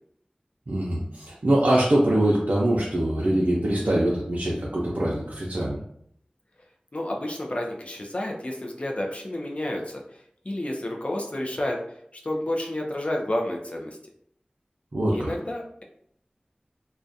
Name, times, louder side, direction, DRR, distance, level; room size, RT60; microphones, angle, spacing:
voice 1, 0.7-5.8 14.9-15.3, right 1 dB, 70° right, -5 dB, 0.4 m, -23 dB
voice 2, 6.9-10.0 10.4-11.8 12.2-14.0 15.1-15.8, left 1 dB, 45° left, 1 dB, 0.4 m, -30 dB
2.4 x 2.1 x 2.6 m, 0.68 s
wide cardioid pair, 45°, 3 cm